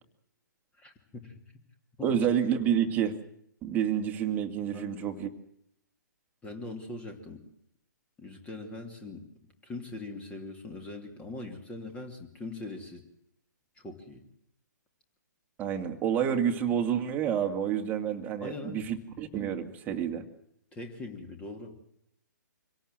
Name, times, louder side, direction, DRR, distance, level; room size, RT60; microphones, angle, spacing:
voice 1, 0.8-1.3 2.0-2.1 4.7-5.0 6.4-7.4 8.2-9.2 9.6-13.0 13.8-14.2 18.4-18.9 20.7-21.8, left 2 dB, 10° left, 5 dB, 2.8 m, -41 dB
voice 2, 2.0-3.2 3.6-5.3 15.6-20.2, right 8 dB, 15° right, 5 dB, 2.1 m, -29 dB
25.5 x 17.5 x 7.6 m, 0.75 s
figure-of-eight pair, 130°, 10 cm